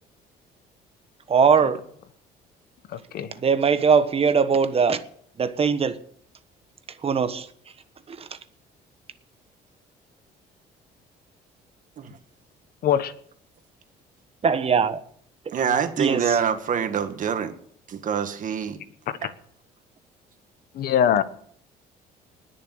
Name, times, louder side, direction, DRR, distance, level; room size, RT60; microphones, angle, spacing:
voice 1, 1.3-1.8 3.4-5.0 5.4-6.0 7.0-7.5 8.1-8.3 14.4-15.0 16.0-16.4, right 6 dB, 35° right, 1.2 m, -20 dB
voice 2, 2.9-3.3 12.8-13.1 19.2-19.3 20.7-21.2, left 9 dB, 65° left, 1.2 m, -22 dB
voice 3, 15.5-17.5 17.9-18.8 19.2-19.3, right 7 dB, 50° right, 1.9 m, -25 dB
20.0 x 6.9 x 7.9 m
cardioid pair, 110°, 17 cm